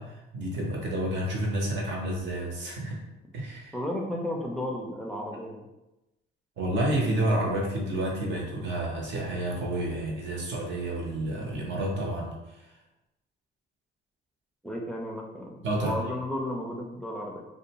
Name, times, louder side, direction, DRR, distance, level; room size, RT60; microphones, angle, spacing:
voice 1, 0.0-3.0 3.3-3.7 6.6-12.3 15.6-15.9, right 1 dB, 70° right, -1 dB, 0.8 m, -30 dB
voice 2, 3.7-5.7 14.6-17.5, left 1 dB, 5° left, -1 dB, 0.4 m, -33 dB
2.5 x 2.2 x 2.9 m, 0.98 s
cardioid pair, 90°, 20 cm